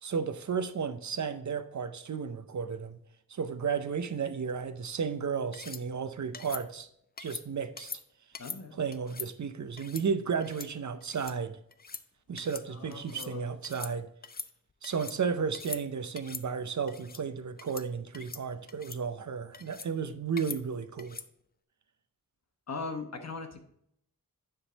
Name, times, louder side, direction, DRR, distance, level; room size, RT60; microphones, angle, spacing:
voice 1, 0.0-3.0 3.3-6.9 7.2-7.9 8.7-11.6 12.3-14.1 14.8-21.2, right 6 dB, 55° right, 0.6 m, -33 dB
sound 1, 5.5-5.8 6.3-6.6 7.2-7.4 7.8-8.0 8.3-8.6 8.9-9.3 9.8-10.0 10.4-10.7 11.0-11.3 11.7-12.0 12.4-12.7 12.9-13.3 13.6-13.9 14.2-15.2 15.5-15.8 16.2-16.4 16.9-17.2 17.6-17.9 18.1-18.4 18.7-19.0 19.5-19.9 20.4-20.6 21.0-21.3, left 5 dB, 30° left, 0.4 m, -42 dB
voice 2, 8.4-8.8 12.7-13.5 22.7-23.6, left 4 dB, 45° left, 1.0 m, -39 dB
9.8 x 3.7 x 3.9 m
wide cardioid pair, 105°, 35 cm